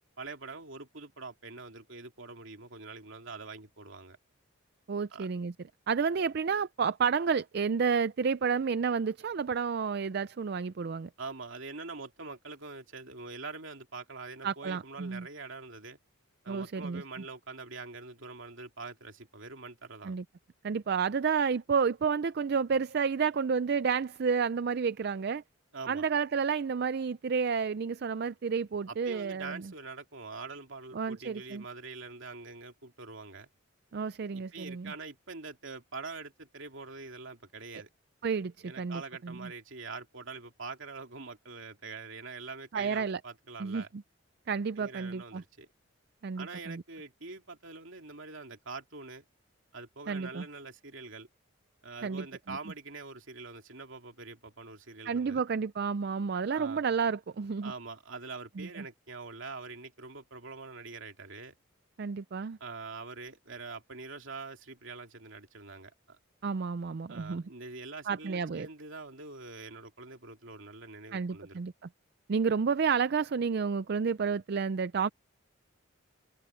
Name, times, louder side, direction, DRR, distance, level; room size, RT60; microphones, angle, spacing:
voice 1, 0.2-4.2 5.1-5.3 11.2-16.0 16.4-20.2 25.7-26.1 28.9-33.5 34.3-37.9 38.6-43.9 44.8-45.7 46.4-49.2 49.7-51.3 51.8-55.4 56.5-56.8 57.6-61.5 62.6-66.2 67.1-71.6, right 3 dB, 65° right, 2.7 m, -44 dB
voice 2, 4.9-5.5 5.9-11.1 14.4-15.3 16.5-17.0 20.0-20.2 20.6-25.4 25.9-29.7 30.9-31.6 33.9-34.9 38.2-39.5 42.7-43.2 43.6-44.0 44.5-45.4 46.2-46.8 50.1-50.5 52.0-52.6 55.0-57.7 58.6-58.8 62.0-62.6 66.4-67.4 68.1-68.7 71.1-71.7 72.3-75.1, right 5 dB, 50° right, 0.4 m, -30 dB
open air
head